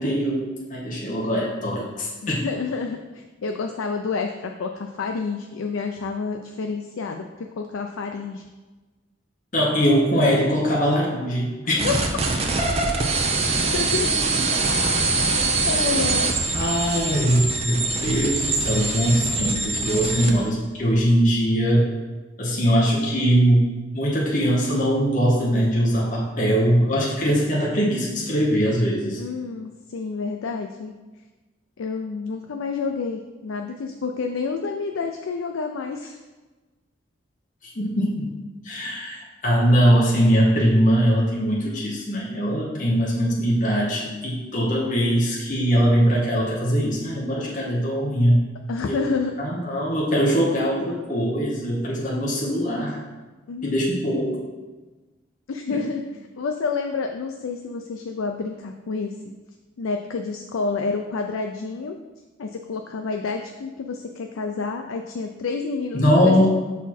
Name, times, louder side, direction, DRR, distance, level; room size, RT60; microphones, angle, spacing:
voice 1, 0.0-2.4 9.5-11.9 16.5-21.9 22.4-23.6 23.9-29.2 37.8-38.3 38.6-48.4 48.8-49.1 49.4-53.0 53.6-54.4 65.9-66.5, equal, 40° left, -4 dB, 0.9 m, -21 dB
voice 2, 2.2-8.4 11.8-11.9 13.7-14.1 15.7-16.3 29.2-30.9 31.8-36.2 48.7-49.3 53.5-53.9 55.5-56.0 56.4-59.3 59.8-62.0 62.4-66.5, left 4 dB, 90° left, 4 dB, 0.4 m, -29 dB
sound 1, 11.8-20.3, right 3 dB, 30° right, 0.6 m, -23 dB
5.9 x 4.2 x 4.2 m, 1.2 s
head